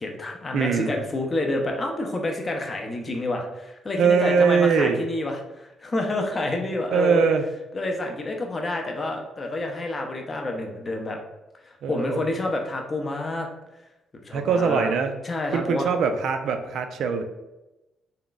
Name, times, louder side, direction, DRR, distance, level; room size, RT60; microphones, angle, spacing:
voice 1, 0.0-7.3 7.7-11.2 11.6-13.5 14.2-14.9 15.2-15.9, left 2 dB, 25° left, 2 dB, 0.5 m, -28 dB
voice 2, 0.5-0.9 4.0-5.0 6.9-7.4 11.8-12.3 14.3-15.1 15.5-17.2, right 5 dB, 65° right, 7 dB, 0.3 m, -22 dB
3.5 x 2.2 x 3.9 m, 1.0 s
cardioid pair, 165°, 0 cm